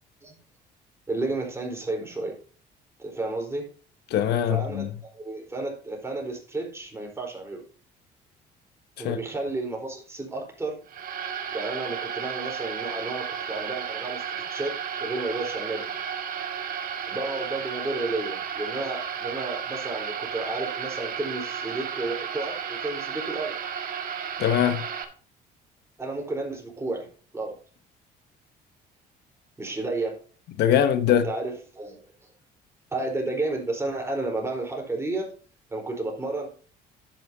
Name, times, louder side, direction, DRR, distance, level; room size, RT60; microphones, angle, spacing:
voice 1, 1.1-2.4 3.0-3.7 4.5-7.6 9.0-10.8 11.5-15.9 17.1-23.5 26.0-27.1 27.3-27.5 29.6-30.1 31.1-32.3 32.9-35.3 35.7-36.5, right 2 dB, 15° right, 4.0 m, -32 dB
voice 2, 4.1-4.9 9.0-9.2 24.4-24.8 30.6-31.3, left 9 dB, 75° left, 1.0 m, -22 dB
sound 1, 10.9-25.0, right 7 dB, 55° right, 1.6 m, -33 dB
10.5 x 9.0 x 2.7 m
cardioid pair, 110°, 17 cm